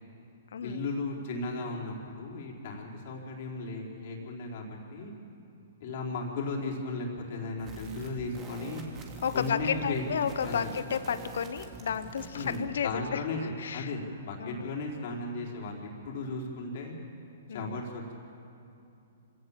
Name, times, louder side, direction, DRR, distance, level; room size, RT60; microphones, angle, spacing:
voice 1, 0.6-5.1 5.8-8.8 9.3-10.1 10.4-10.7 12.3-17.0 17.5-18.1, left 3 dB, 55° left, -1 dB, 4.5 m, -36 dB
sound 1, 7.6-12.6, right 3 dB, 25° right, 3.1 m, -45 dB
voice 2, 9.2-13.9 14.4-14.7 17.5-17.8, left 7 dB, 70° left, 13 dB, 1.0 m, -32 dB
25.0 x 17.5 x 7.5 m, 2.7 s
hypercardioid pair, 125°, 0 cm